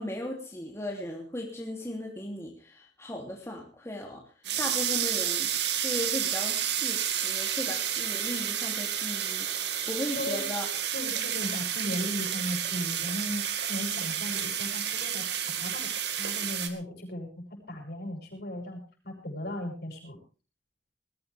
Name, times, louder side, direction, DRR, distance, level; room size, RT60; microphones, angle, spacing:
voice 1, 0.0-4.2 4.6-5.5 5.8-10.7, left 1 dB, 15° left, 0 dB, 2.7 m, -37 dB
sound 1, 4.5-16.7, right 9 dB, 65° right, 2.0 m, -30 dB
voice 2, 10.9-15.3 15.6-15.9 16.2-18.8 19.0-20.2, left 1 dB, 60° left, 2 dB, 7.1 m, -36 dB
20.5 x 15.5 x 3.4 m, 0.36 s
head